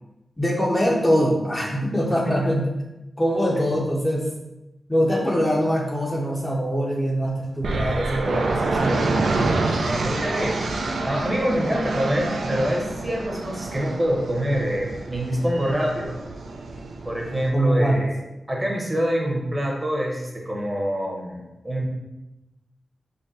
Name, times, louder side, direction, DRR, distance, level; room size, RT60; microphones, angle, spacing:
voice 1, 0.4-2.7 3.2-4.3 4.9-9.3 17.5-18.0, equal, 15° left, -3 dB, 0.5 m, -23 dB
sound 1, 7.6-17.5, right 3 dB, 85° right, 0.4 m, -27 dB
voice 2, 9.8-10.6 11.0-16.1 17.0-18.2 18.5-21.9, equal, 20° right, -1 dB, 0.8 m, -25 dB
3.7 x 2.1 x 3.9 m, 0.99 s
wide cardioid pair, 95°, 0 cm